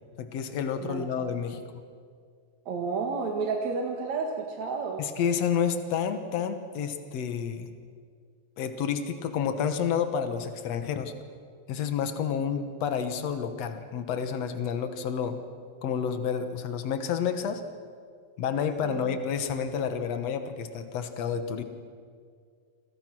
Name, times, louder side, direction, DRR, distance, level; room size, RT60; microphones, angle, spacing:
voice 1, 0.2-1.6 5.0-7.7 8.6-11.1 11.7-15.4 15.8-17.6 18.4-21.6, left 7 dB, 85° left, 8 dB, 1.4 m, -30 dB
voice 2, 2.7-5.0 18.9-19.1, right 4 dB, 50° right, 2 dB, 2.4 m, -31 dB
29.5 x 25.0 x 6.2 m, 2.1 s
omnidirectional pair, 4.9 m